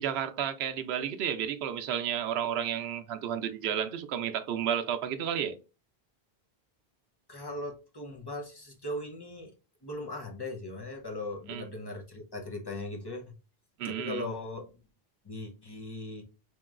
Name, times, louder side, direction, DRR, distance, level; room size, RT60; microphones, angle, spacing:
voice 1, 0.0-5.6 11.5-11.6 13.8-14.3, right 9 dB, 85° right, 0.8 m, -32 dB
voice 2, 7.3-9.5 9.8-13.4 13.8-14.7 15.2-16.2, left 2 dB, 30° left, 0.6 m, -39 dB
4.6 x 2.9 x 2.4 m
omnidirectional pair, 1.0 m